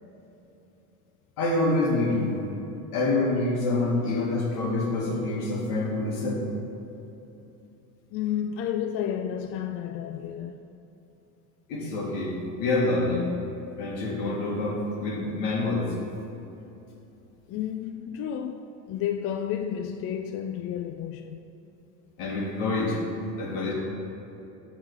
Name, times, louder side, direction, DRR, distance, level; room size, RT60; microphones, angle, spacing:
voice 1, 1.4-2.4 2.9-6.5 11.7-13.3 13.8-15.9 22.2-23.0 23.3-23.7, left 2 dB, 75° left, 2.0 m, -26 dB
voice 2, 8.1-10.7 17.5-21.4, left 9 dB, 40° left, 0.4 m, -31 dB
10.5 x 4.0 x 6.2 m
supercardioid pair, 125°, 35 cm